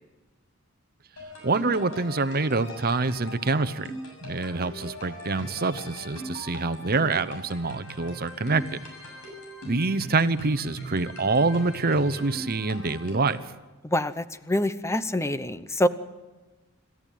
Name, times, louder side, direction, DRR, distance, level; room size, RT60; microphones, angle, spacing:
sound 1, 1.2-13.5, equal, 80° left, 7.1 m, -40 dB
voice 1, 1.4-3.9 4.2-8.8 9.6-13.4, right 3 dB, 45° right, 13 dB, 1.0 m, -26 dB
voice 2, 13.8-15.9, left 1 dB, 15° left, 14 dB, 0.8 m, -26 dB
26.5 x 13.5 x 9.2 m, 1.2 s
head